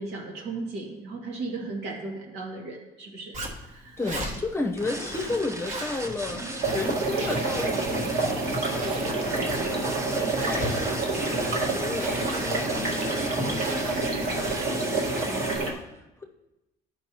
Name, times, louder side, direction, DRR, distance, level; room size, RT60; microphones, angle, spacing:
voice 1, 0.0-3.4 3.7-4.0, right 3 dB, 80° right, -1 dB, 2.1 m, -36 dB
Zipper (clothing), 3.3-14.8, right 1 dB, 45° right, 1.5 m, -39 dB
voice 2, 4.0-9.7 10.0-15.8 16.2-16.3, left 3 dB, 15° left, 1 dB, 0.9 m, -34 dB
sound 1, 4.8-15.6, right 1 dB, 15° right, 0.9 m, -37 dB
sound 2, 6.6-15.7, right 3 dB, 60° right, 1.8 m, -28 dB
12.5 x 5.3 x 3.0 m, 0.97 s
cardioid pair, 110°, 17 cm